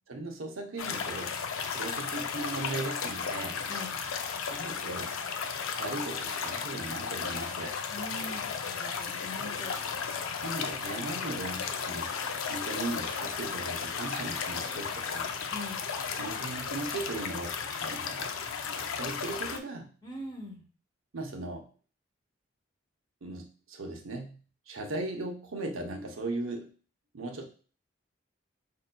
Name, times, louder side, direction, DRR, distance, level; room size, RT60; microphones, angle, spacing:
voice 1, 0.1-1.4 1.7-3.6 4.5-5.1 5.8-7.8 9.4-9.5 10.4-12.2 12.4-15.3 16.2-18.4 18.7-19.9 21.1-21.7 23.2-24.4 24.7-26.7 27.1-27.5, right 2 dB, 90° right, 2 dB, 0.7 m, -38 dB
sound 1, 0.8-19.6, left 6 dB, 90° left, 0.4 m, -34 dB
voice 2, 7.9-9.8 15.5-15.8 20.0-20.6, left 1 dB, 20° left, -1 dB, 0.9 m, -42 dB
5.2 x 2.6 x 2.2 m, 0.39 s
head